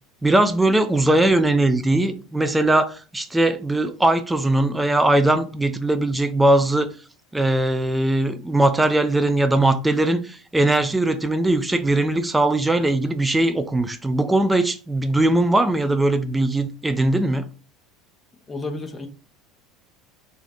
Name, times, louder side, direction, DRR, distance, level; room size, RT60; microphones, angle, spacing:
voice 1, 0.2-6.9 7.3-17.4, right 1 dB, 10° right, 0.6 m, -20 dB
voice 2, 18.5-19.1, left 2 dB, 20° left, 0.8 m, -31 dB
5.0 x 2.4 x 4.2 m
figure-of-eight pair, 70°, 0 cm